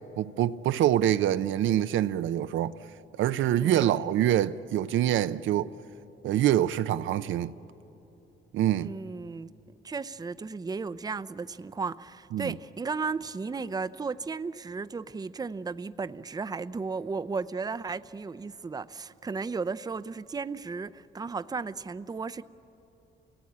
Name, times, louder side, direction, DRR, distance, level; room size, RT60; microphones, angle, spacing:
voice 1, 0.0-2.8 3.2-5.7 6.2-7.5 8.5-8.9 12.3-12.5, right 12 dB, 80° right, 0.6 m, -25 dB
voice 2, 3.6-4.1 8.8-9.5 9.8-22.4, right 4 dB, 20° right, 0.6 m, -35 dB
28.5 x 18.0 x 8.6 m
cardioid pair, 90°, 20 cm